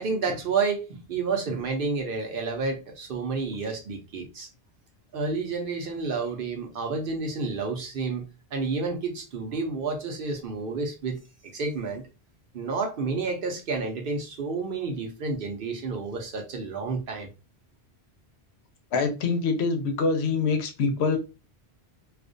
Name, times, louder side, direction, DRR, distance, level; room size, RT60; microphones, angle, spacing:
voice 1, 0.0-4.5 5.1-11.2 11.5-12.0 12.5-17.3, right 4 dB, 65° right, 0.7 m, -30 dB
voice 2, 18.9-21.2, left 4 dB, 80° left, 0.9 m, -25 dB
2.4 x 2.1 x 2.5 m
omnidirectional pair, 1.1 m